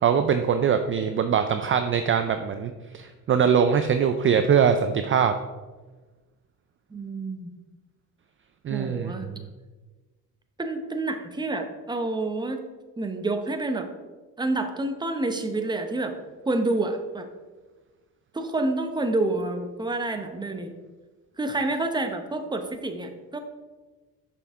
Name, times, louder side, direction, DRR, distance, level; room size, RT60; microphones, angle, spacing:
voice 1, 0.0-5.3 8.6-9.4, right 7 dB, 35° right, 8 dB, 0.4 m, -22 dB
voice 2, 6.9-7.5 8.7-9.3 10.6-12.6 13.0-13.9 14.4-16.2 16.5-17.3 18.3-20.7 21.4-23.4, right 2 dB, 10° right, 6 dB, 0.7 m, -28 dB
6.8 x 5.5 x 3.6 m, 1.3 s
cardioid pair, 100°, 36 cm